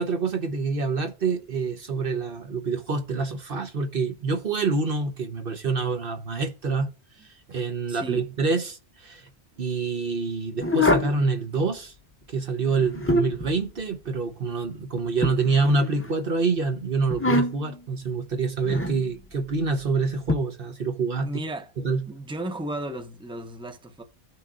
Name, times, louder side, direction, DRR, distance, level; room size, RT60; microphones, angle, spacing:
voice 1, 0.0-6.9 7.2-9.3 9.6-11.9 12.3-21.3 21.8-22.0, right 4 dB, 55° right, 1.1 m, -26 dB
voice 2, 7.9-8.3 21.2-21.7 22.1-24.0, right 1 dB, 5° right, 0.9 m, -34 dB
sound 1, 10.6-11.2 12.7-13.5 15.2-16.1 17.1-17.8 18.6-19.0 20.3-20.4, left 2 dB, 15° left, 0.6 m, -24 dB
15.5 x 6.1 x 2.5 m
omnidirectional pair, 1.2 m